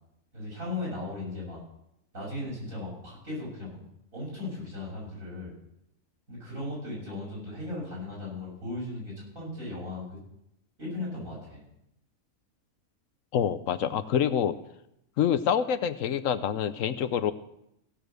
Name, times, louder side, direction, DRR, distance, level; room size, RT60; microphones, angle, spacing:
voice 1, 0.3-1.6 2.1-3.8 4.1-5.5 6.3-10.0 10.8-11.6, left 2 dB, 70° right, -5 dB, 7.1 m, -37 dB
voice 2, 13.3-14.5 15.2-17.3, left 8 dB, 70° left, 13 dB, 1.0 m, -26 dB
16.0 x 7.0 x 6.4 m, 0.80 s
omnidirectional pair, 1.5 m